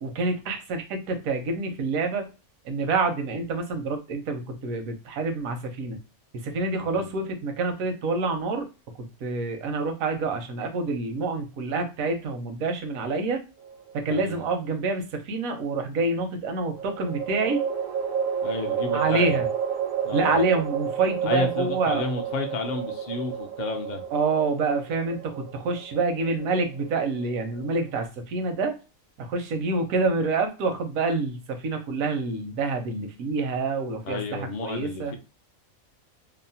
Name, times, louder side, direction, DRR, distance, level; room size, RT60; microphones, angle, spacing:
voice 1, 0.0-2.3 2.6-6.0 6.3-8.7 9.0-13.4 13.9-17.6 18.9-19.5 20.1-22.0 24.1-28.8 29.2-35.1, right 3 dB, 80° right, 5 dB, 1.0 m, -27 dB
sound 1, 13.6-14.4 16.7-28.0, right 8 dB, 65° right, 0.5 m, -31 dB
voice 2, 14.1-14.4 18.4-19.4 20.0-20.4 21.2-24.0 34.0-35.2, left 3 dB, 65° left, 4 dB, 0.4 m, -31 dB
2.8 x 2.0 x 2.6 m, 0.31 s
omnidirectional pair, 1.4 m